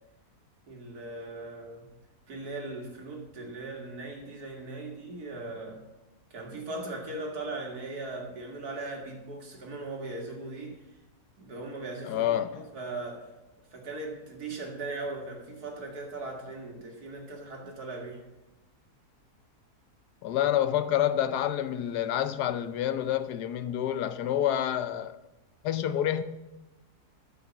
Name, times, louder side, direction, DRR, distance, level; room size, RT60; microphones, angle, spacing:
voice 1, 0.7-2.0 2.3-5.8 6.3-10.8 11.4-13.3 13.7-18.3, right 2 dB, 70° right, 2.4 m, -39 dB
voice 2, 12.0-12.7 20.2-25.2 25.6-26.2, left 11 dB, 85° left, 1.3 m, -28 dB
13.0 x 5.6 x 5.8 m
omnidirectional pair, 1.7 m